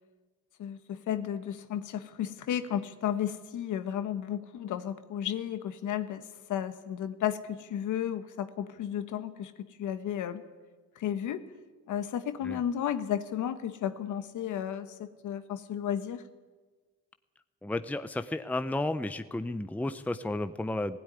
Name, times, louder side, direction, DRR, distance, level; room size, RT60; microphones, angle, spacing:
voice 1, 0.6-10.4 10.9-11.4 11.9-16.2, left 10 dB, 75° left, 10 dB, 1.3 m, -33 dB
voice 2, 17.6-21.0, left 2 dB, 5° left, 10 dB, 0.7 m, -32 dB
16.5 x 16.5 x 9.9 m, 1.3 s
cardioid pair, 90°, 30 cm